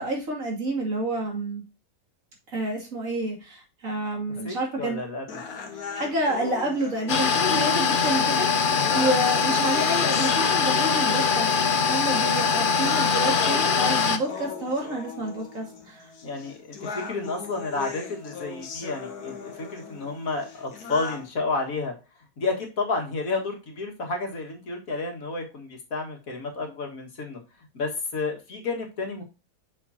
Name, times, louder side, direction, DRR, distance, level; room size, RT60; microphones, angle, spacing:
voice 1, 0.0-1.6 2.5-5.0 5.5-8.5 8.9-11.5 11.9-16.1, right 1 dB, 60° right, -1 dB, 2.9 m, -29 dB
voice 2, 4.4-5.2 8.7-9.0 16.2-21.9 22.4-27.4 27.7-29.2, left 3 dB, 65° left, 2 dB, 2.2 m, -31 dB
sound 1, 5.3-21.3, left 5 dB, 90° left, 1.8 m, -38 dB
sound 2, 7.1-14.2, left 5 dB, 45° left, 0.7 m, -22 dB
7.3 x 6.4 x 2.8 m, 0.30 s
omnidirectional pair, 1.6 m